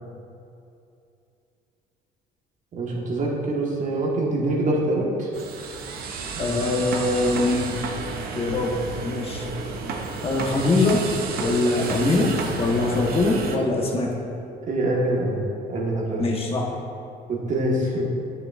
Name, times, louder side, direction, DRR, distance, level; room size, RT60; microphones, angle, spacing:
voice 1, 2.7-5.3 6.3-6.6 14.6-15.4 15.7-16.2 17.3-18.1, right 1 dB, 50° right, -2 dB, 1.4 m, -25 dB
sound 1, 5.3-13.6, right 4 dB, 65° right, 0.7 m, -32 dB
voice 2, 6.4-7.8 8.3-9.5 10.2-11.1 11.4-14.1 16.2-16.7, left 2 dB, 35° left, -1 dB, 1.1 m, -23 dB
8.8 x 5.8 x 2.4 m, 2.7 s
cardioid pair, 110°, 17 cm